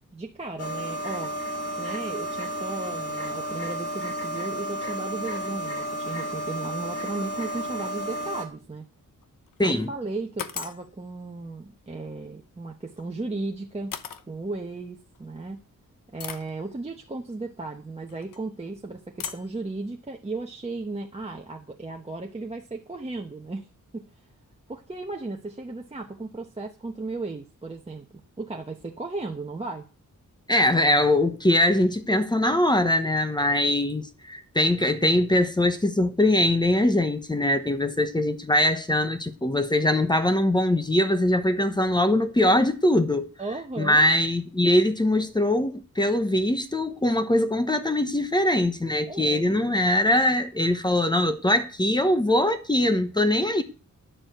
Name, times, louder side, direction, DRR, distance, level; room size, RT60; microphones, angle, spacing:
voice 1, 0.1-1.3 1.8-8.8 9.6-13.9 14.3-15.6 16.1-23.7 23.9-24.0 24.7-28.1 28.4-29.9 43.4-44.0 49.1-49.6, right 3 dB, 20° right, 1.0 m, -35 dB
sound 1, 0.6-8.5, right 1 dB, 50° left, 2.6 m, -32 dB
sound 2, 9.2-9.6 10.4-10.9 12.9-13.0 13.9-14.2 15.1-15.2 16.2-16.5 18.1-18.4 19.2-19.5, left 7 dB, 90° left, 0.9 m, -36 dB
voice 2, 9.6-9.9 30.5-43.3 43.8-53.6, left 1 dB, 15° left, 0.9 m, -22 dB
10.0 x 7.1 x 7.8 m
wide cardioid pair, 170°, 32 cm